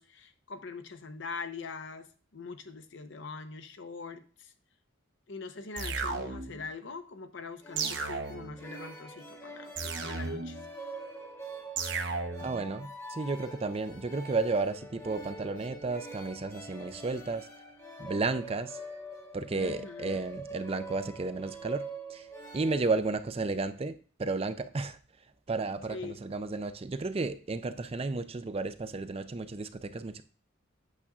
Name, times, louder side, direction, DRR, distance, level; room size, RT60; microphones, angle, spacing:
voice 1, 0.0-4.5 5.3-10.6 18.1-18.3 19.5-20.3 25.9-26.2, left 4 dB, 60° left, 9 dB, 0.8 m, -43 dB
sound 1, 5.8-6.7 7.8-8.7 9.8-10.7 11.8-12.6, right 4 dB, 60° right, 0.9 m, -34 dB
sound 2, 7.6-23.0, right 1 dB, 15° left, 1.1 m, -45 dB
voice 2, 12.4-17.5 18.0-18.8 19.3-21.8 22.1-22.3 22.5-23.9 24.2-25.0 25.5-30.2, right 3 dB, 30° right, 10 dB, 0.4 m, -33 dB
8.5 x 6.5 x 2.4 m, 0.39 s
head